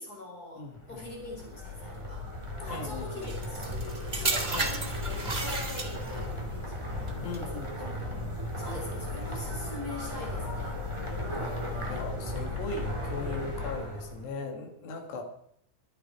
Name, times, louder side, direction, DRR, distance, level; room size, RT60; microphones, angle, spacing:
voice 1, 0.0-2.3 2.6-7.6 8.6-10.8, left 2 dB, 20° left, 0 dB, 5.3 m, -43 dB
voice 2, 0.6-1.0 2.7-3.3 4.4-4.7 7.2-8.3 11.3-15.2, left 3 dB, 65° left, 4 dB, 4.4 m, -39 dB
sound 1, 0.8-14.2, left 1 dB, 5° right, 2.7 m, -36 dB
sound 2, 3.2-6.3 7.1-7.4, right 3 dB, 70° right, 0.5 m, -33 dB
24.0 x 10.0 x 4.8 m, 0.67 s
omnidirectional pair, 5.3 m